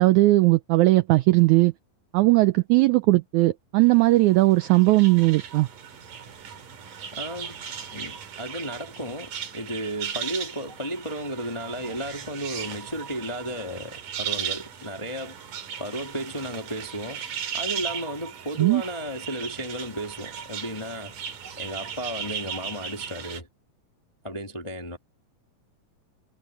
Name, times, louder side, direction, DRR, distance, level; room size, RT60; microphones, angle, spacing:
voice 1, 0.0-1.7 2.1-5.7 18.6-18.8, right 19 dB, 85° right, 1.7 m, -18 dB
sound 1, 3.9-23.4, right 8 dB, 65° right, 4.0 m, -37 dB
voice 2, 7.1-7.6 7.9-15.3 15.8-17.3 17.5-21.1 21.6-23.5 24.2-25.0, right 1 dB, 25° left, 0.6 m, -34 dB
omnidirectional pair, 4.0 m